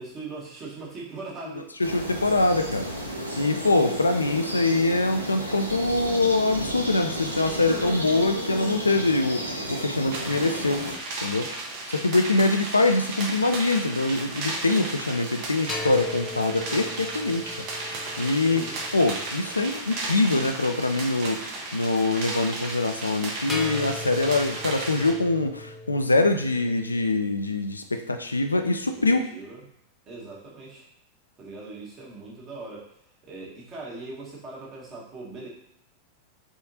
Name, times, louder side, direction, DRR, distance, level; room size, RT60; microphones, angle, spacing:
voice 1, 0.0-1.7 18.4-18.8 28.9-29.6 30.1-30.9 31.4-32.9 33.2-35.5, right 3 dB, 30° right, -4 dB, 1.3 m, -40 dB
voice 2, 1.8-2.9 3.4-10.8 11.2-11.5 11.9-17.5 18.2-18.6 18.9-21.4 21.7-29.2, left 2 dB, 80° left, 6 dB, 0.3 m, -24 dB
sound 1, 1.8-11.0, right 1 dB, 85° right, 0.6 m, -33 dB
sound 2, 10.1-25.1, right 2 dB, 45° right, 0.9 m, -34 dB
sound 3, 15.7-20.0 23.5-27.3, left 2 dB, 15° left, 0.5 m, -39 dB
3.7 x 3.5 x 2.7 m, 0.78 s
figure-of-eight pair, 90°, 0 cm